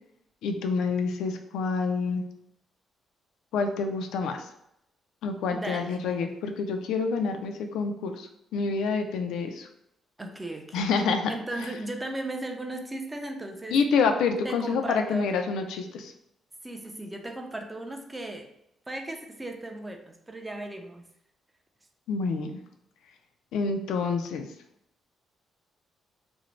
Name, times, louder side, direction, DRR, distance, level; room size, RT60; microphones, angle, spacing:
voice 1, 0.4-2.2 3.5-4.5 5.2-9.7 10.7-11.3 13.7-16.1 22.1-22.5 23.5-24.5, left 4 dB, 85° left, 6 dB, 0.3 m, -27 dB
voice 2, 5.5-6.0 10.2-10.8 11.3-13.8 14.4-15.4 16.6-18.5 18.9-21.0, right 1 dB, 15° right, 3 dB, 0.4 m, -36 dB
2.5 x 2.0 x 3.1 m, 0.76 s
cardioid pair, 90°, 0 cm